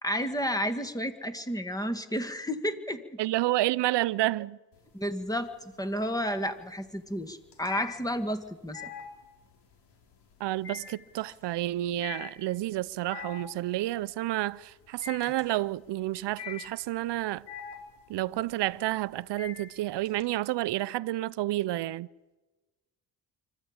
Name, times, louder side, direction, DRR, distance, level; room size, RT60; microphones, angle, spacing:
voice 1, 0.0-3.0 4.9-8.9, equal, 10° left, 1.9 m, -31 dB
voice 2, 3.2-4.6 10.4-17.4 18.1-22.1, right 16 dB, 80° right, 0.6 m, -30 dB
sound 1, 4.7-5.4 5.7-20.2, left 7 dB, 75° left, 3.8 m, -44 dB
25.0 x 13.5 x 8.9 m
cardioid pair, 85°, 41 cm